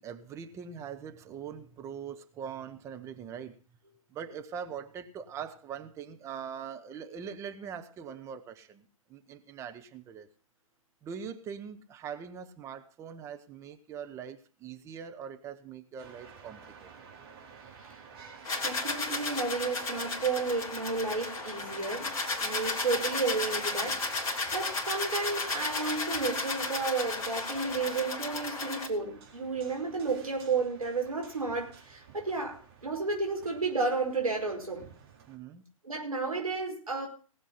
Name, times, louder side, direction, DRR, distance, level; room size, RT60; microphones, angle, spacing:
voice 1, 0.0-3.6 4.1-8.8 9.1-10.3 11.0-17.1 35.3-35.6, right 7 dB, 15° right, 1.1 m, -42 dB
sound 1, 16.0-35.4, right 6 dB, 45° right, 4.3 m, -52 dB
sound 2, 18.4-28.9, left 3 dB, 15° left, 2.7 m, -34 dB
voice 2, 18.6-34.9 35.8-37.1, right 4 dB, 75° right, 5.2 m, -32 dB
19.0 x 7.4 x 5.6 m
figure-of-eight pair, 125°, 18 cm